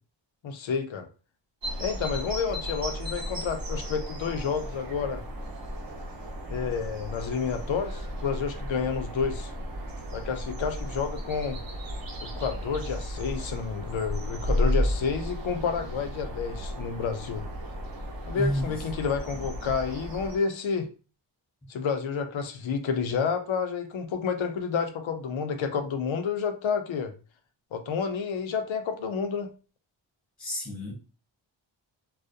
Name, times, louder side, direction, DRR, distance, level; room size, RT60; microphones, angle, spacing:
voice 1, 0.4-1.1 1.8-5.2 6.5-9.5 10.1-11.6 12.2-17.5 18.3-20.9 21.7-27.1 27.7-29.5, left 6 dB, 70° left, 0.6 m, -30 dB
sound 1, 1.6-20.4, equal, 45° right, 0.7 m, -34 dB
voice 2, 18.3-18.8 30.4-30.9, equal, ahead, 0.8 m, -30 dB
2.3 x 2.1 x 2.5 m
wide cardioid pair, 90°, 48 cm